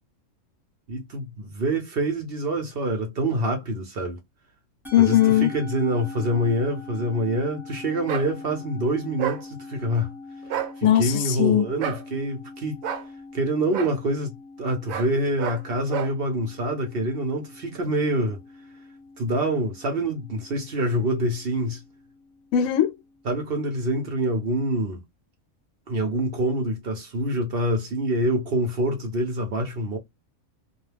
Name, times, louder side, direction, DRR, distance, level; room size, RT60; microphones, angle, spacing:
voice 1, 0.9-4.2 5.0-10.1 10.8-12.8 13.3-18.4 19.2-21.8 23.3-25.0 25.9-30.0, right 1 dB, 50° right, 0.8 m, -26 dB
Musical instrument, 4.8-23.3, left 3 dB, ahead, 0.9 m, -43 dB
voice 2, 4.9-5.5 10.8-11.7 22.5-23.0, left 12 dB, 80° left, 1.0 m, -19 dB
sound 1, 8.1-8.3 9.2-9.4 10.4-10.7 11.8-12.0 12.8-13.1 13.7-13.9 14.9-15.1 15.4-15.6 15.9-16.1, right 9 dB, 85° right, 1.0 m, -29 dB
2.3 x 2.2 x 3.1 m
omnidirectional pair, 1.4 m